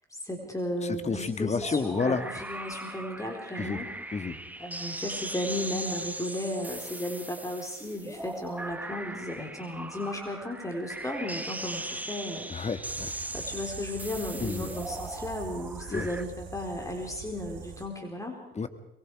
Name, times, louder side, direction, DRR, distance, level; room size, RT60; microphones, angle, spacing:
voice 1, 0.1-3.9 4.6-12.5 13.3-18.4, left 1 dB, 15° left, 2 dB, 4.4 m, -35 dB
voice 2, 0.8-2.2 3.6-3.8 4.1-4.4 12.5-13.1 14.4-14.7 15.9-16.1 18.6-18.7, left 4 dB, 35° left, 9 dB, 2.0 m, -30 dB
sound 1, 1.6-16.2, right 1 dB, 10° right, 1.3 m, -39 dB
sound 2, 12.8-17.9, right 7 dB, 75° right, 4.0 m, -44 dB
23.0 x 23.0 x 4.9 m, 0.79 s
cardioid pair, 90°, 20 cm